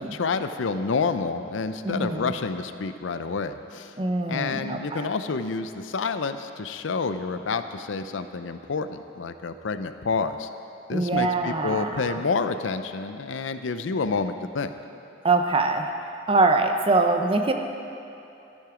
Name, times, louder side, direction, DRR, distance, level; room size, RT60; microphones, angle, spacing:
voice 1, 0.0-3.9 4.3-10.5 10.9-14.7, left 4 dB, 85° left, 10 dB, 0.5 m, -29 dB
voice 2, 1.8-2.3 4.0-5.1 10.9-12.2 15.2-15.9 16.3-17.5, right 3 dB, 30° right, 5 dB, 0.7 m, -23 dB
12.5 x 10.5 x 4.9 m, 2.8 s
head